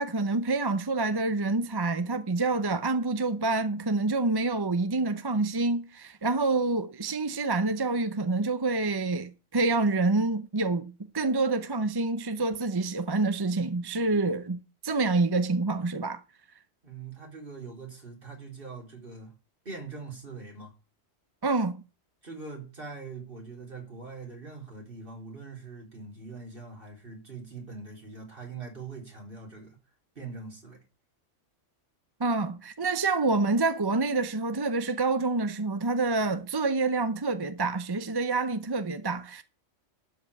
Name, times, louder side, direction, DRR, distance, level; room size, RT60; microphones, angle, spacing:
voice 1, 0.0-14.6 14.8-16.2 21.4-21.8 32.2-39.4, right 3 dB, 25° right, 0.6 m, -27 dB
voice 2, 16.8-19.3 19.7-20.7 22.2-29.8 30.2-30.8, right 4 dB, 50° right, 4.0 m, -42 dB
12.5 x 5.3 x 8.3 m
omnidirectional pair, 1.2 m